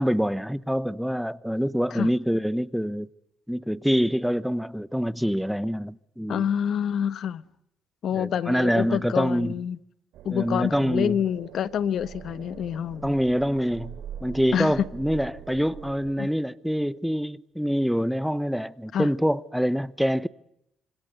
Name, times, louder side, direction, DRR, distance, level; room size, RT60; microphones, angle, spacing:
voice 1, 0.0-3.1 3.5-6.5 8.1-9.5 10.3-11.2 13.0-14.0 14.2-20.3, equal, ahead, 1.0 m, -25 dB
voice 2, 6.3-7.4 8.0-9.8 10.2-13.1 14.5-14.7 16.2-16.3 18.9-19.1, left 9 dB, 65° left, 1.2 m, -27 dB
sound 1, 10.1-16.1, right 9 dB, 90° right, 3.3 m, -43 dB
26.5 x 26.0 x 8.1 m
cardioid pair, 90°, 0 cm